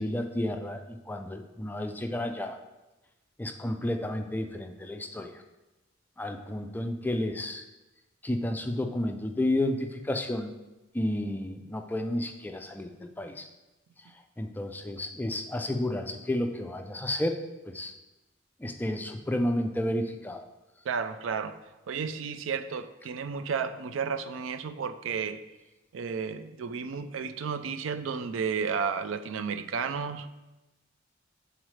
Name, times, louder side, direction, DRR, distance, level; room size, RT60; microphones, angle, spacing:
voice 1, 0.0-2.6 3.4-5.3 6.2-7.6 8.2-10.5 10.9-13.5 14.4-17.4 17.7-17.9 18.6-20.4, left 1 dB, 10° left, 0.3 m, -31 dB
voice 2, 20.9-21.6 21.9-25.4 25.9-30.3, right 6 dB, 90° right, 0.4 m, -32 dB
7.6 x 4.0 x 3.1 m
head